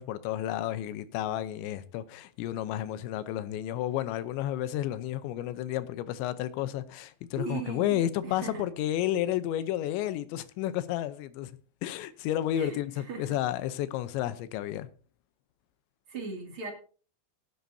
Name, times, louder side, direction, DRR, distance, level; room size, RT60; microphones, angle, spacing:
voice 1, 0.0-11.5 11.8-14.9, left 12 dB, 85° left, 3.1 m, -31 dB
voice 2, 7.4-8.7 12.5-12.8 13.1-13.4 16.1-16.7, right 4 dB, 35° right, 2.6 m, -38 dB
18.0 x 10.5 x 2.7 m
omnidirectional pair, 5.1 m